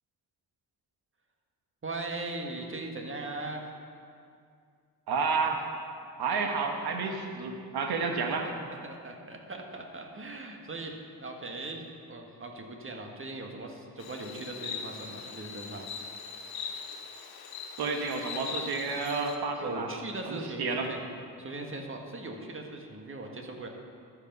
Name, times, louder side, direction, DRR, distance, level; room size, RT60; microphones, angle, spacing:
voice 1, 1.8-3.7 8.2-8.5 8.8-15.9 19.6-21.0 21.4-23.7, right 2 dB, 35° right, 2 dB, 1.5 m, -39 dB
voice 2, 5.1-5.6 6.2-8.5 17.8-19.9 20.3-20.9, right 4 dB, 85° right, 4 dB, 1.2 m, -30 dB
Insect, 14.0-19.4, left 6 dB, 85° left, 0.9 m, -40 dB
13.0 x 5.9 x 5.4 m, 2.4 s
cardioid pair, 70°, 37 cm